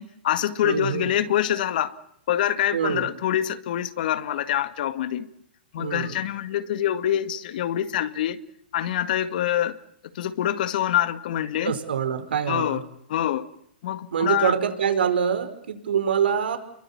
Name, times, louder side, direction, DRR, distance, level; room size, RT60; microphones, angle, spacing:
voice 1, 0.0-1.9 2.3-5.3 5.7-8.4 8.7-9.8 10.2-11.7 12.5-12.8 13.1-13.5 13.8-14.6, left 11 dB, 55° left, 2.0 m, -25 dB
voice 2, 0.6-1.1 2.7-3.1 5.8-6.2 11.6-12.8 14.1-16.6, right 7 dB, 80° right, 5.1 m, -25 dB
29.0 x 23.0 x 7.4 m
hypercardioid pair, 145°, 5 cm